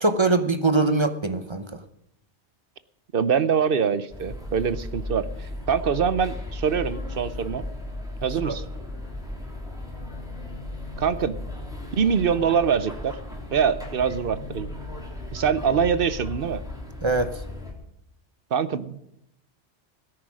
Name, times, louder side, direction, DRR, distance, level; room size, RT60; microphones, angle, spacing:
voice 1, 0.0-1.6 8.4-8.6 17.0-17.3, right 3 dB, 30° right, 10 dB, 0.8 m, -22 dB
voice 2, 3.1-5.3 5.7-7.6 8.2-8.6 11.0-11.4 12.0-13.2 13.5-14.7 15.3-16.6 18.5-19.0, right 7 dB, 60° right, 14 dB, 0.9 m, -24 dB
sound 1, 4.1-17.7, left 2 dB, 5° right, 3.0 m, -36 dB
17.5 x 9.5 x 6.3 m, 0.79 s
omnidirectional pair, 1.1 m